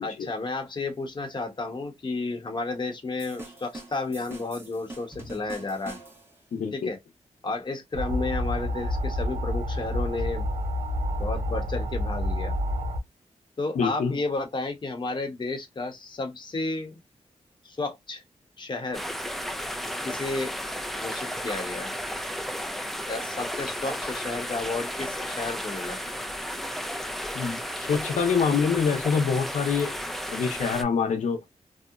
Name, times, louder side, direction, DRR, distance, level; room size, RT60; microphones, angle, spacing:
voice 1, 0.0-6.0 6.7-7.0 7.4-10.4 11.2-12.5 13.6-17.0 17.6-18.2 18.6-19.0 20.0-20.6 20.9-21.9 23.1-26.0, left 3 dB, 40° left, 0.8 m, -32 dB
sound 1, 3.2-6.4, right 2 dB, 20° right, 1.1 m, -43 dB
voice 2, 6.5-6.9 13.8-14.2 27.3-30.0 30.3-31.4, left 6 dB, 90° left, 0.5 m, -25 dB
sound 2, 7.9-13.0, left 1 dB, 80° right, 0.6 m, -28 dB
sound 3, 18.9-30.8, equal, ahead, 0.4 m, -33 dB
2.8 x 2.0 x 2.3 m
wide cardioid pair, 95°, 12 cm